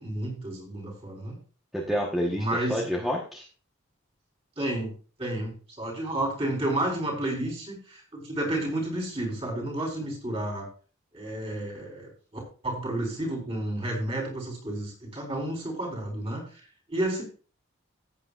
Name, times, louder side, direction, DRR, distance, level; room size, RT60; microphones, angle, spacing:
voice 1, 0.0-1.4 2.3-2.8 4.6-4.9 5.2-10.7 11.1-12.1 12.6-16.6 16.9-17.2, right 1 dB, 25° right, -1 dB, 4.1 m, -31 dB
voice 2, 1.7-3.4, equal, ahead, -2 dB, 1.1 m, -29 dB
15.5 x 8.6 x 2.5 m, 0.38 s
head